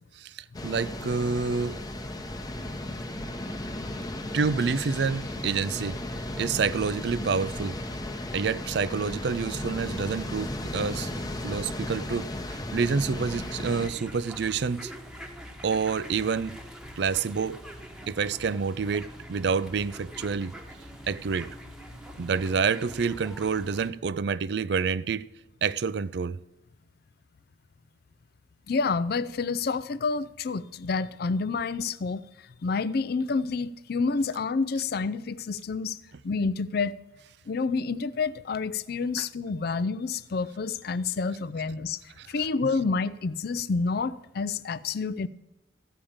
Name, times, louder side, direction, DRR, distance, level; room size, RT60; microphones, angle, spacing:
voice 1, 0.2-1.8 4.3-6.0 6.4-7.8 8.3-11.1 11.4-14.9 15.6-16.6 17.0-17.6 18.1-20.5 21.1-21.5 22.2-25.3 25.6-26.4 39.2-39.3 42.2-42.5, right 5 dB, 60° right, 0.4 m, -28 dB
sound 1, 0.5-13.9, left 1 dB, 20° left, 0.9 m, -35 dB
sound 2, 13.1-23.9, equal, 5° right, 1.1 m, -44 dB
voice 2, 28.7-32.2 32.6-37.0 37.5-42.0 42.3-45.3, left 4 dB, 55° left, 0.4 m, -28 dB
14.5 x 5.0 x 8.7 m
head